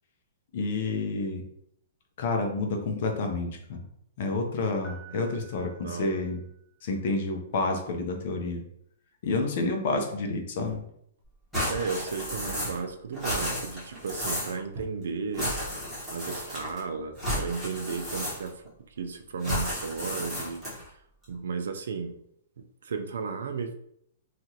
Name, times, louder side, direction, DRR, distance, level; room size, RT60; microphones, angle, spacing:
voice 1, 0.5-1.4 2.2-3.8 4.2-6.4 6.8-8.6 9.2-10.8, left 3 dB, 50° left, 4 dB, 0.6 m, -29 dB
Piano, 4.8-6.9, right 6 dB, 15° left, 1.1 m, -52 dB
voice 2, 5.8-6.3 11.7-15.8 16.1-18.5 19.0-20.6 21.3-22.2 22.8-23.7, right 5 dB, 85° right, 7 dB, 0.4 m, -34 dB
sound 1, 10.7-11.2 12.6-13.0 13.3-13.7 14.7-15.3 16.0-16.4 17.2-17.9 18.8-19.1, right 3 dB, 45° right, 0.8 m, -43 dB
sound 2, 11.5-12.9 13.1-14.6 15.3-16.8 17.2-18.7 19.4-20.9, equal, ahead, 1.3 m, -32 dB
2.9 x 2.4 x 2.8 m, 0.71 s
hypercardioid pair, 160°, 0 cm